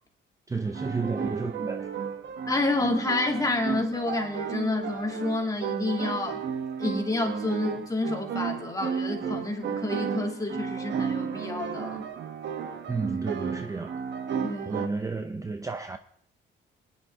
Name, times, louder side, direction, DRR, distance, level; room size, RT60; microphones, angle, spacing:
voice 1, 0.5-1.9 12.9-14.0 14.7-16.0, right 4 dB, 15° right, 0.6 m, -32 dB
sound 1, 0.7-14.9, right 7 dB, 65° right, 1.4 m, -33 dB
voice 2, 2.5-6.4 6.8-12.0 14.4-14.9, left 2 dB, 15° left, 2.6 m, -29 dB
22.0 x 10.0 x 3.8 m
cardioid pair, 115°, 21 cm